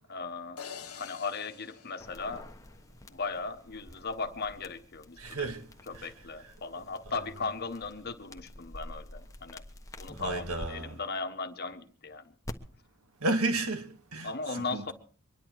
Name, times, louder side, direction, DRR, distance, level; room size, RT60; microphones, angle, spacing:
voice 1, 0.1-0.6 0.9-2.5 3.1-5.5 5.9-9.6 10.0-12.3 14.2-14.9, left 4 dB, 45° left, 1.2 m, -37 dB
sound 1, 0.6-2.9, left 7 dB, 80° left, 1.2 m, -47 dB
sound 2, 2.0-10.7 12.4-12.5, left 1 dB, 15° left, 1.2 m, -48 dB
voice 2, 5.2-5.7 5.9-6.1 6.8-6.9 10.2-11.0 13.2-14.9, right 2 dB, 85° right, 2.0 m, -33 dB
24.0 x 11.0 x 4.7 m
head